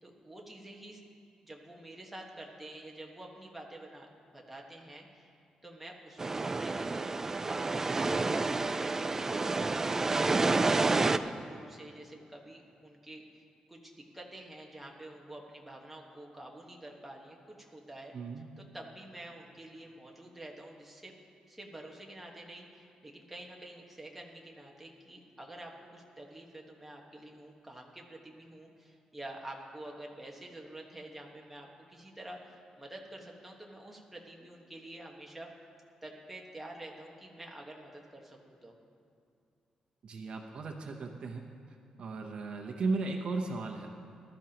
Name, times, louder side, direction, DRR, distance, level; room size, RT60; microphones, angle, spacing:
voice 1, 0.0-1.0 1.4-5.3 5.6-13.4 13.7-18.1 18.6-21.1 21.5-35.5 36.0-38.8, right 1 dB, 5° right, -1 dB, 1.4 m, -48 dB
sound 1, 6.2-11.2, right 3 dB, 20° right, 0.3 m, -29 dB
voice 2, 18.1-18.5 40.0-41.4 42.0-43.9, right 3 dB, 55° right, 2 dB, 0.9 m, -35 dB
20.0 x 12.5 x 3.0 m, 2.4 s
wide cardioid pair, 145°, 2 cm